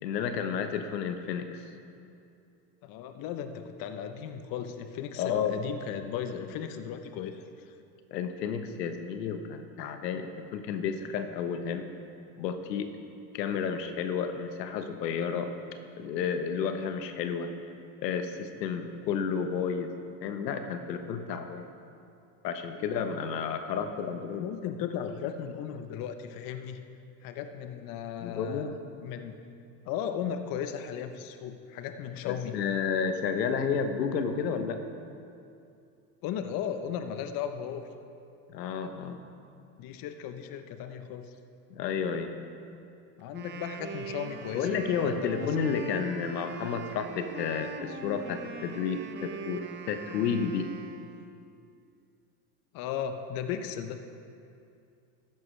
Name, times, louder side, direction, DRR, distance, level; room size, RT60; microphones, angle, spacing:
voice 1, 0.0-1.6 5.2-5.6 8.1-11.8 12.4-12.9 13.3-15.5 16.0-17.5 18.0-19.9 20.2-21.7 22.4-24.5 28.2-28.7 32.2-34.8 38.5-39.2 41.7-42.3 44.5-49.6 49.9-50.7, left 6 dB, 90° left, 7 dB, 1.1 m, -31 dB
voice 2, 2.8-7.7 22.7-23.1 24.3-26.8 27.2-29.4 29.9-32.6 36.2-37.8 39.8-41.3 43.2-44.7 45.0-45.5 52.7-54.0, left 8 dB, 45° left, 8 dB, 0.8 m, -36 dB
Wind instrument woodwind instrument, 43.2-51.4, right 5 dB, 20° right, 0.8 m, -42 dB
14.0 x 10.5 x 3.3 m, 2.5 s
supercardioid pair, 105°, 48 cm